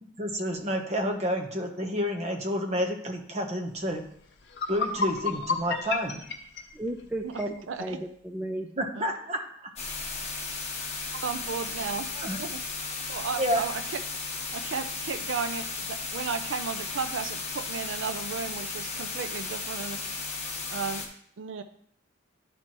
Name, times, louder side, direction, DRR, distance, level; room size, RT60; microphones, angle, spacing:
voice 1, 0.0-4.0 4.7-6.2 8.8-9.7 12.2-12.4 13.4-13.6, equal, 35° right, 3 dB, 0.9 m, -30 dB
sound 1, 4.0-4.1 4.4-7.5, left 4 dB, 55° left, 0.7 m, -32 dB
voice 2, 6.7-8.7, right 1 dB, 10° right, 2 dB, 0.4 m, -34 dB
voice 3, 7.2-8.0 8.9-9.1 11.1-12.1 12.4-12.6 13.1-14.0 14.5-20.1 20.3-21.6, right 5 dB, 70° right, 9 dB, 0.4 m, -34 dB
sound 2, 9.8-21.1, left 4 dB, 35° left, 1.1 m, -35 dB
10.5 x 4.5 x 3.0 m, 0.66 s
head